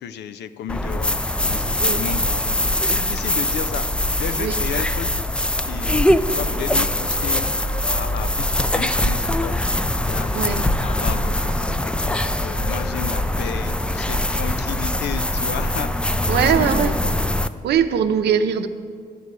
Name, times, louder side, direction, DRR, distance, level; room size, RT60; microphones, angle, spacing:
voice 1, 0.0-1.2 1.5-5.1 5.7-7.5 7.9-9.6 10.0-17.1, left 9 dB, 80° left, 12 dB, 0.4 m, -33 dB
sound 1, 0.7-17.5, left 1 dB, 5° left, 0.4 m, -22 dB
Wind instrument woodwind instrument, 6.4-13.9, left 1 dB, 30° left, 1.4 m, -40 dB
voice 2, 16.3-16.9 17.6-18.7, right 8 dB, 75° right, 9 dB, 0.5 m, -20 dB
11.5 x 4.7 x 6.8 m, 2.1 s
supercardioid pair, 55°, 17 cm